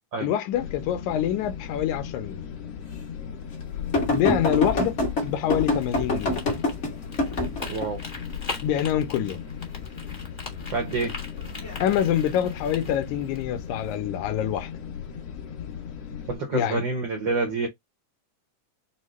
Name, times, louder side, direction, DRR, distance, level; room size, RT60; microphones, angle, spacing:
voice 1, 0.2-2.4 4.1-5.0 5.2-6.5 8.6-9.4 11.8-14.7 16.5-16.8, left 10 dB, 85° left, 2.1 m, -26 dB
sound 1, 0.5-16.4, left 8 dB, 60° left, 1.9 m, -37 dB
sound 2, 3.9-7.9 11.4-11.7 12.9-13.0, left 2 dB, 45° left, 0.9 m, -26 dB
sound 3, 5.8-13.4, left 3 dB, 20° left, 0.7 m, -41 dB
voice 2, 7.7-8.0 10.7-11.2 16.3-17.7, right 3 dB, 85° right, 1.0 m, -27 dB
6.3 x 2.1 x 3.1 m
omnidirectional pair, 3.5 m